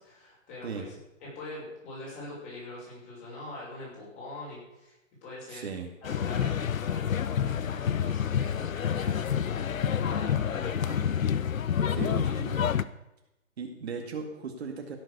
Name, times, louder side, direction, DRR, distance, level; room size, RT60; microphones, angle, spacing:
voice 1, 0.0-5.7 6.0-11.4 11.9-12.5, left 2 dB, 15° left, -5 dB, 6.2 m, -44 dB
voice 2, 5.5-5.9 11.9-12.5 13.6-15.0, right 5 dB, 50° right, 3 dB, 2.1 m, -37 dB
sound 1, 6.0-12.8, left 8 dB, 85° left, 0.8 m, -28 dB
16.5 x 7.8 x 6.8 m, 0.92 s
hypercardioid pair, 165°, 40 cm